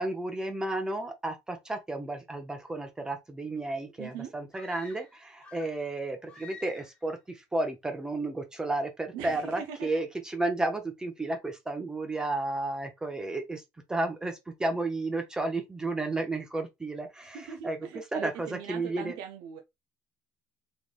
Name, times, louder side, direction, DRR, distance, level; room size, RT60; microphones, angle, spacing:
voice 1, 0.0-13.6 13.9-19.2, right 2 dB, 10° right, 0.5 m, -32 dB
voice 2, 4.0-4.3 9.1-9.9 17.3-19.6, right 8 dB, 85° right, 0.6 m, -40 dB
sound 1, 4.5-5.9 6.3-7.1, left 4 dB, 20° left, 1.1 m, -50 dB
3.7 x 3.4 x 2.4 m
cardioid pair, 165°, 7 cm